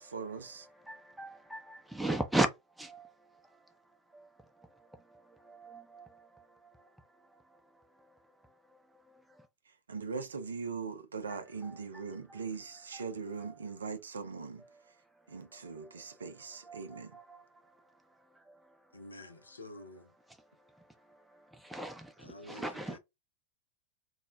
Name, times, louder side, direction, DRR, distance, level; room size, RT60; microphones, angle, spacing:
voice 1, 0.0-0.7 9.9-14.6 15.3-17.2, right 5 dB, 70° right, 0.4 m, -40 dB
voice 2, 0.9-2.5 2.8-2.9 5.6-5.8 11.6-11.8 12.9-13.1 16.7-16.8 21.7-22.0 22.5-23.0, right 2 dB, 5° right, 0.5 m, -34 dB
voice 3, 18.9-20.1 22.2-23.0, left 1 dB, 80° left, 0.5 m, -49 dB
2.2 x 2.0 x 3.0 m
figure-of-eight pair, 90°, 0 cm